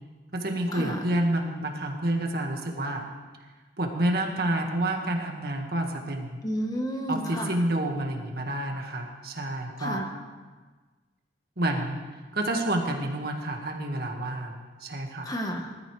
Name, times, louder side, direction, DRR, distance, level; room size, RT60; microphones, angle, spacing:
voice 1, 0.3-3.0 3.8-6.4 7.1-10.0 11.6-12.0 12.3-15.3, right 1 dB, 60° right, 2 dB, 1.7 m, -29 dB
voice 2, 6.4-7.5 9.8-10.1 15.2-15.7, equal, 20° left, 3 dB, 1.3 m, -31 dB
20.5 x 13.0 x 3.3 m, 1.4 s
head